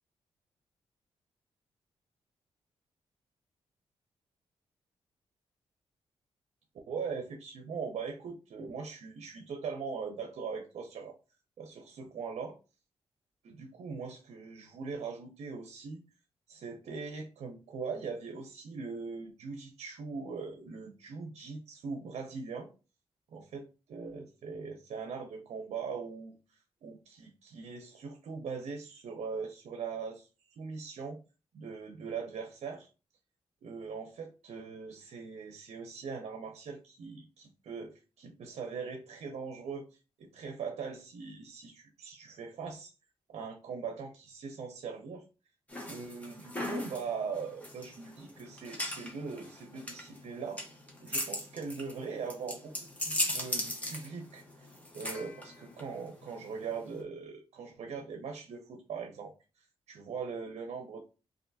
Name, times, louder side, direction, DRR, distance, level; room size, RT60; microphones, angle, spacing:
voice 1, 6.9-11.2 11.6-12.6 13.4-16.0 16.5-22.7 23.3-26.4 26.8-30.3 30.6-31.2 31.5-32.9 33.6-39.9 40.2-42.9 43.3-45.2 45.9-50.6 51.0-52.7 53.0-61.0, right 5 dB, 75° right, 4 dB, 0.6 m, -41 dB
sound 1, 45.7-57.0, left 1 dB, 15° left, 1.0 m, -38 dB
3.3 x 2.5 x 2.7 m, 0.32 s
cardioid pair, 95°, 11 cm